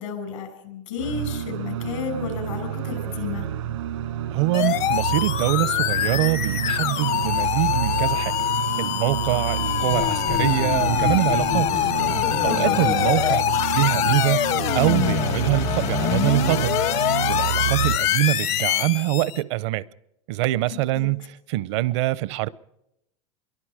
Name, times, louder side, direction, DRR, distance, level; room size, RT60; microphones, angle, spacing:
voice 1, 0.0-3.5 12.4-12.9 20.9-21.1, left 5 dB, 85° left, 6.4 m, -32 dB
sound 1, 1.0-18.0, right 10 dB, 85° right, 1.5 m, -29 dB
voice 2, 4.3-8.4 8.8-11.7 12.4-14.5 14.7-16.8 17.2-19.8 20.3-21.2 21.5-22.5, right 18 dB, 65° right, 0.7 m, -24 dB
sound 2, 4.5-19.4, left 12 dB, 45° left, 0.8 m, -24 dB
26.0 x 23.0 x 4.9 m
supercardioid pair, 115°, 15 cm